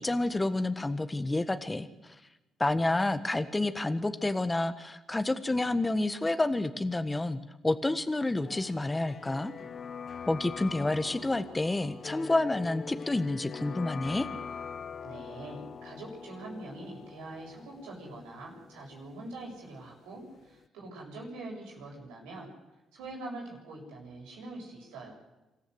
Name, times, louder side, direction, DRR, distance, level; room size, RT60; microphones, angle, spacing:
voice 1, 0.0-2.1 2.6-9.5 10.3-14.3, left 2 dB, 20° left, 10 dB, 1.5 m, -29 dB
sound 1, 8.4-20.2 20.4-20.5, left 6 dB, 55° left, 0.9 m, -43 dB
voice 2, 15.0-22.5 22.9-25.1, right 2 dB, 90° right, -2 dB, 7.2 m, -44 dB
27.0 x 14.0 x 8.1 m, 1.0 s
supercardioid pair, 60°, 0 cm